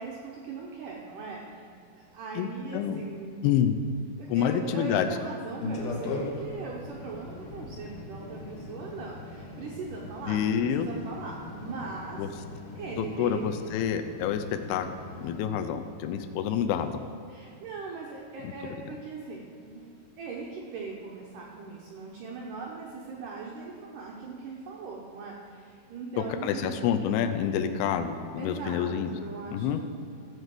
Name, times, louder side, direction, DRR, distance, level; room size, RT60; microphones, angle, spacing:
voice 1, 0.0-1.7 2.0-3.4 4.2-12.3 12.8-13.5 17.3-26.9 28.4-29.9, right 4 dB, 80° right, -2 dB, 1.8 m, -40 dB
voice 2, 2.4-3.0 3.4-3.8 4.3-5.2 10.3-10.9 12.2-12.3 13.0-14.9 15.2-16.9 18.4-18.5 26.2-29.1 29.5-29.8, left 9 dB, 85° left, 7 dB, 2.4 m, -28 dB
sound 1, 5.6-15.4, left 2 dB, 65° left, 2.3 m, -39 dB
14.0 x 5.3 x 7.6 m, 2.6 s
omnidirectional pair, 5.1 m